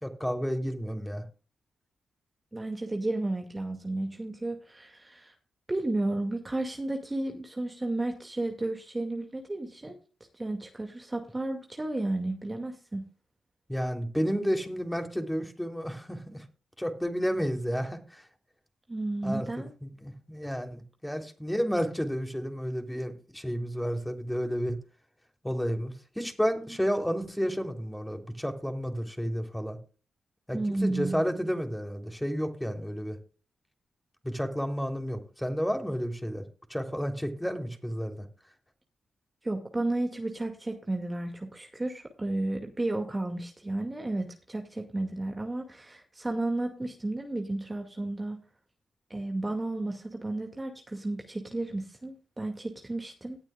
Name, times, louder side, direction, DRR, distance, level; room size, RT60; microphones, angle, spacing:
voice 1, 0.0-1.2 13.7-16.4 16.8-18.3 19.2-19.5 19.8-24.8 25.4-29.8 30.5-33.2 34.2-36.4 36.7-38.2, equal, 5° left, 4 dB, 3.4 m, -31 dB
voice 2, 2.5-5.3 5.7-10.0 10.4-13.0 18.9-19.7 30.5-31.2 39.4-48.4 49.1-53.4, right 2 dB, 25° right, 3 dB, 2.2 m, -32 dB
18.0 x 8.8 x 2.4 m, 0.36 s
supercardioid pair, 40°, 0 cm